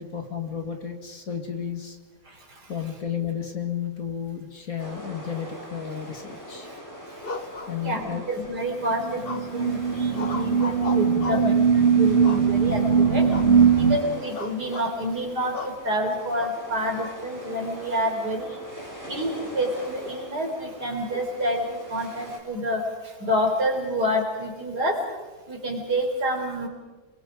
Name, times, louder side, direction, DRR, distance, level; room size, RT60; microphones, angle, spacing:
voice 1, 0.0-2.0 2.7-6.7 7.7-8.3, left 8 dB, 50° left, 5 dB, 2.4 m, -32 dB
voice 2, 2.3-2.7 6.6-7.5 7.8-13.3 13.7-18.6 19.0-25.1 25.5-26.7, equal, 65° right, 2 dB, 4.5 m, -28 dB
sound 1, 4.8-22.4, equal, 10° left, 4.4 m, -42 dB
sound 2, 7.2-8.3 9.2-9.7 10.1-11.6 12.2-12.8 13.3-13.6 13.9-14.0 14.4-14.9 15.5-15.8 16.4-17.1, left 3 dB, 35° left, 1.3 m, -35 dB
sound 3, 8.7-14.0, right 6 dB, 35° right, 2.4 m, -20 dB
29.5 x 22.0 x 5.0 m, 1.2 s
omnidirectional pair, 1.9 m